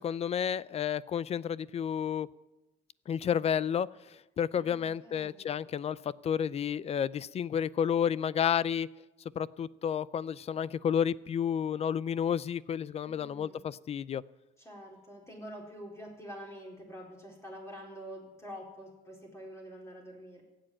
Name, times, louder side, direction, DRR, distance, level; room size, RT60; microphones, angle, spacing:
voice 1, 0.0-2.3 3.1-8.9 9.4-14.2, left 8 dB, 40° left, 20 dB, 0.4 m, -31 dB
voice 2, 4.5-5.4 13.0-13.6 14.6-20.4, equal, 15° left, -2 dB, 4.2 m, -47 dB
16.0 x 7.8 x 8.8 m, 1.0 s
cardioid pair, 110°, 17 cm